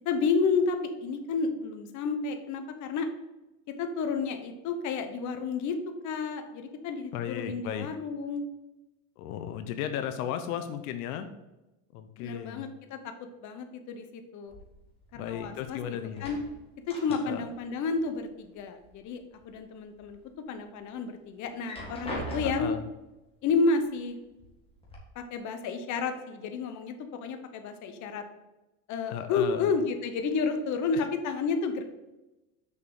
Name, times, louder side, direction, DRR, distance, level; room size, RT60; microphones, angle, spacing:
voice 1, 0.0-3.1 3.8-8.4 12.2-13.1 13.4-14.5 15.1-16.4 16.9-20.2 20.5-22.7 23.4-24.2 25.1-26.9 27.2-28.2 28.9-31.8, left 4 dB, 45° left, 7 dB, 1.0 m, -31 dB
voice 2, 7.1-7.9 9.2-11.3 11.9-12.7 15.1-16.3 17.2-17.4 22.4-22.8 29.1-29.7, left 9 dB, 85° left, 9 dB, 0.8 m, -35 dB
sound 1, 14.5-15.7 16.0-17.7 17.9-18.9 19.3-20.1 20.6-20.7 21.5-22.9 23.8-23.9 24.3-25.0, equal, 15° left, 1.9 m, -41 dB
6.5 x 5.4 x 4.8 m, 1.0 s
supercardioid pair, 130°, 42 cm